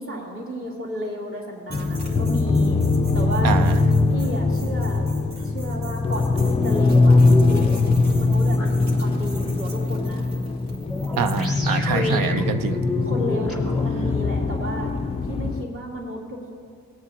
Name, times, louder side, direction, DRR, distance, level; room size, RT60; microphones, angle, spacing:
voice 1, 0.0-2.8 3.1-3.7 4.1-5.0 5.4-7.8 8.2-10.2 11.8-12.2 13.0-14.9 15.3-16.5, equal, 40° right, -4 dB, 2.5 m, -32 dB
sound 1, 1.7-15.6, left 3 dB, 20° left, 0.4 m, -21 dB
sound 2, 1.7-11.5, right 2 dB, 55° right, 2.1 m, -45 dB
voice 2, 3.4-3.8 11.2-12.8, right 7 dB, 75° right, 11 dB, 0.6 m, -25 dB
sound 3, 6.3-7.8 8.6-8.7 10.9-13.9, left 1 dB, ahead, 2.0 m, -32 dB
19.0 x 8.7 x 2.8 m, 2.2 s
cardioid pair, 140°, 34 cm